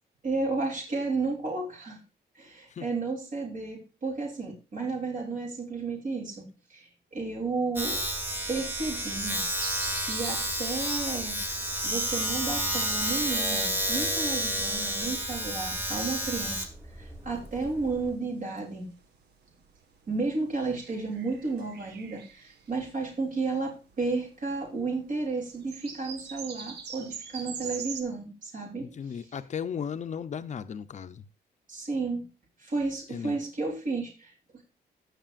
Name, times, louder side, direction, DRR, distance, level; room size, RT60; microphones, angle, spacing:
voice 1, 0.2-2.0 2.3-8.0 8.5-9.4 10.0-11.4 11.8-16.7 17.0-18.9 20.1-28.9 31.7-32.2 32.6-34.3, right 3 dB, 50° right, 3.4 m, -32 dB
Domestic sounds home sounds, 7.8-18.1, equal, 10° right, 1.7 m, -30 dB
sound 1, 9.5-24.3 24.8-24.9 25.0-28.0, right 6 dB, 90° right, 1.6 m, -43 dB
voice 2, 28.8-31.3 33.1-33.4, left 7 dB, 45° left, 0.7 m, -36 dB
18.5 x 6.7 x 2.5 m
cardioid pair, 130°, 17 cm